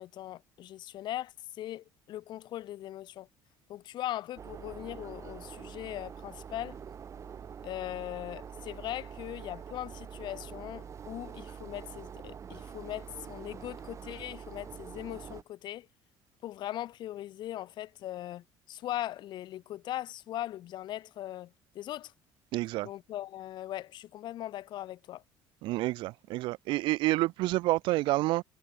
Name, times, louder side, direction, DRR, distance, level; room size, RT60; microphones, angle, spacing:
voice 1, 0.0-3.3 3.7-6.8 7.6-15.9 16.4-22.1 22.8-25.2, left 13 dB, 55° left, 4.4 m, -40 dB
sound 1, 4.4-15.4, right 7 dB, 35° right, 3.3 m, -45 dB
voice 2, 22.5-22.9 25.6-28.4, right 19 dB, 65° right, 0.4 m, -28 dB
cardioid pair, 120°, 9 cm